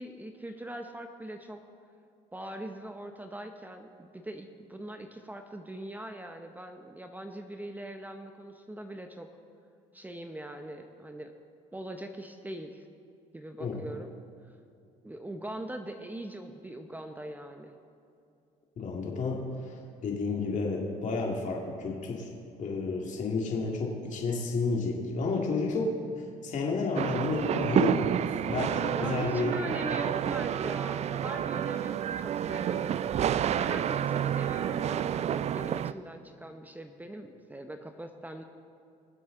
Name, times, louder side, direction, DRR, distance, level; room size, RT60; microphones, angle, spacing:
voice 1, 0.0-1.6 2.3-9.3 9.9-11.3 11.7-12.9 13.3-14.1 14.5-14.6 15.0-17.8 29.0-33.0 33.5-38.4, right 1 dB, 10° right, 6 dB, 0.9 m, -41 dB
voice 2, 18.8-22.3 22.6-25.9 26.4-29.5, left 3 dB, 50° left, -1 dB, 2.1 m, -31 dB
sound 1, 27.0-35.9, right 9 dB, 45° right, 0.4 m, -29 dB
23.0 x 7.7 x 3.8 m, 2.5 s
supercardioid pair, 75°, 16 cm